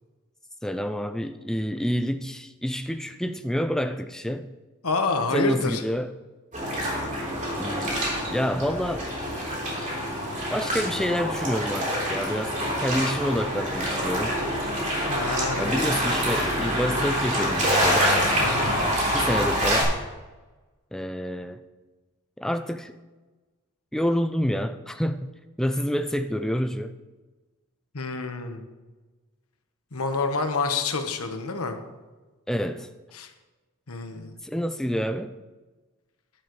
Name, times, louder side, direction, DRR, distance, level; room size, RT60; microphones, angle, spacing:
voice 1, 0.6-4.5 5.3-6.1 7.6-8.0 8.3-9.1 10.5-14.4 15.6-18.1 19.1-19.9 20.9-21.6 22.4-23.0 23.9-25.3 25.6-27.0 32.5-32.9 34.4-35.3, equal, ahead, 8 dB, 0.3 m, -28 dB
voice 2, 4.8-5.8 14.9-15.8 18.4-18.7 27.9-28.6 29.9-31.8 33.1-33.3 33.9-34.4, left 4 dB, 75° left, 6 dB, 1.2 m, -28 dB
sound 1, 6.5-19.8, equal, 35° right, 3.6 m, -26 dB
11.5 x 11.0 x 3.2 m, 1.2 s
head